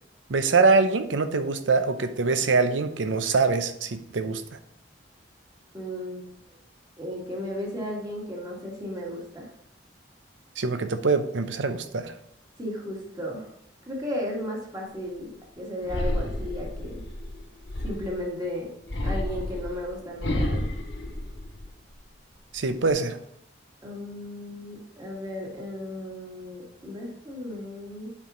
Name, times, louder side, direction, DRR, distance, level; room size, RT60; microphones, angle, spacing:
voice 1, 0.3-4.4 10.6-12.1 22.5-23.2, right 4 dB, 80° right, 10 dB, 0.6 m, -24 dB
voice 2, 5.7-6.3 7.0-9.5 12.6-13.5 13.8-17.0 17.8-18.7 19.0-20.7 23.8-28.1, left 1 dB, 20° right, -3 dB, 1.9 m, -35 dB
sound 1, 15.9-18.3 18.9-21.9 22.4-22.9, left 1 dB, 70° left, 1.4 m, -31 dB
8.7 x 4.6 x 3.8 m, 0.73 s
head